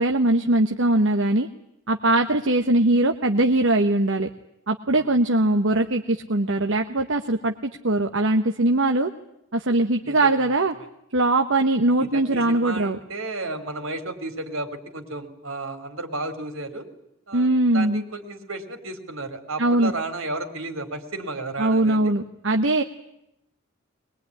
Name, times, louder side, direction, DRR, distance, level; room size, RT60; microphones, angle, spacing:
voice 1, 0.0-1.5 1.9-4.3 4.7-9.1 9.5-10.7 11.1-13.0 17.3-18.0 19.6-19.9 21.6-22.8, right 2 dB, 65° right, 5 dB, 1.2 m, -21 dB
voice 2, 10.1-10.4 12.0-16.9 17.3-22.1, right 2 dB, 80° right, 7 dB, 3.7 m, -33 dB
22.5 x 22.0 x 9.8 m, 0.82 s
head